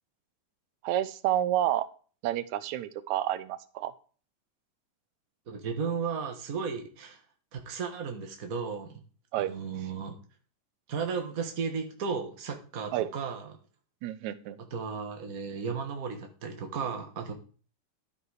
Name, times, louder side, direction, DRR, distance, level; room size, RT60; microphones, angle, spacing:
voice 1, 0.8-1.9 2.2-3.9 9.3-9.5 12.9-13.1 14.0-14.6, right 12 dB, 75° right, 14 dB, 2.0 m, -29 dB
voice 2, 5.5-7.2 7.5-9.0 9.4-10.2 10.9-13.6 14.6-17.3, right 5 dB, 50° right, 4 dB, 1.0 m, -34 dB
12.5 x 7.8 x 4.8 m, 0.39 s
omnidirectional pair, 3.8 m